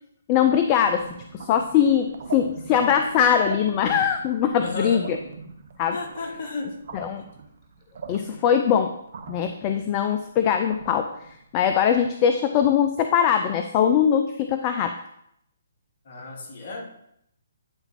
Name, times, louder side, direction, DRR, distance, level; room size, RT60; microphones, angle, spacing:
voice 1, 0.3-1.1 1.3-5.2 5.8-6.0 6.9-7.2 8.1-8.9 9.3-15.0, left 8 dB, 30° left, 6 dB, 0.4 m, -21 dB
sound 1, 0.8-11.9, right 4 dB, 55° right, 0.9 m, -41 dB
voice 2, 4.6-5.1 5.9-6.8 7.2-7.3 16.1-16.8, left 2 dB, 45° left, 1 dB, 1.6 m, -33 dB
8.8 x 4.0 x 4.2 m, 0.76 s
figure-of-eight pair, 140°, 0 cm